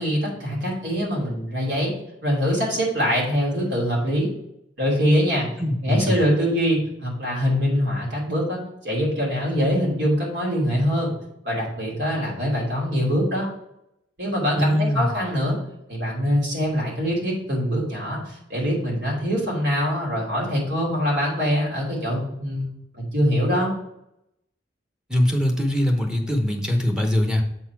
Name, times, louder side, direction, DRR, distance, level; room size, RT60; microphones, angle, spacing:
voice 1, 0.0-1.9 2.2-4.3 4.8-5.5 5.8-11.1 11.4-13.5 14.2-15.6 15.9-22.7 22.9-23.7, equal, 70° right, -3 dB, 2.8 m, -23 dB
voice 2, 5.6-6.2 14.6-15.1 25.1-27.4, left 1 dB, 5° right, 2 dB, 0.9 m, -22 dB
7.3 x 4.1 x 4.6 m, 0.81 s
head